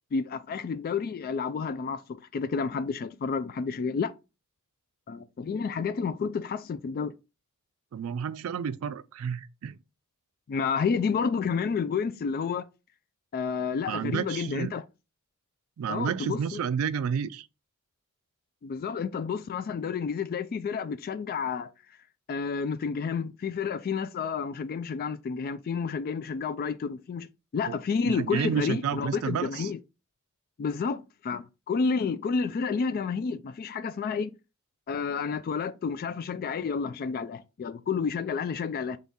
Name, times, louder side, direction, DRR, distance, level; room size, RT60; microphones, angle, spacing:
voice 1, 0.1-4.1 5.1-7.1 10.5-12.7 13.3-14.8 15.9-16.6 18.6-21.7 22.3-29.8 30.6-34.3 34.9-39.0, left 5 dB, 45° left, 0.3 m, -30 dB
voice 2, 7.9-9.8 13.9-14.7 15.8-17.5 27.7-27.8 28.1-29.7, right 7 dB, 75° right, 0.3 m, -31 dB
3.6 x 3.4 x 4.1 m
head